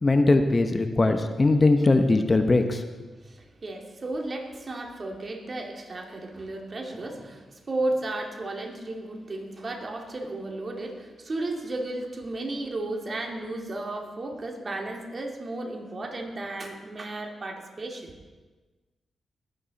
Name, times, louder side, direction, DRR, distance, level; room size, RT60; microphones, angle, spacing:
voice 1, 0.0-2.8, left 2 dB, 35° left, 7 dB, 1.1 m, -20 dB
voice 2, 3.2-18.1, right 2 dB, 45° right, 2 dB, 2.5 m, -34 dB
20.5 x 9.3 x 4.2 m, 1.3 s
supercardioid pair, 55°, 0 cm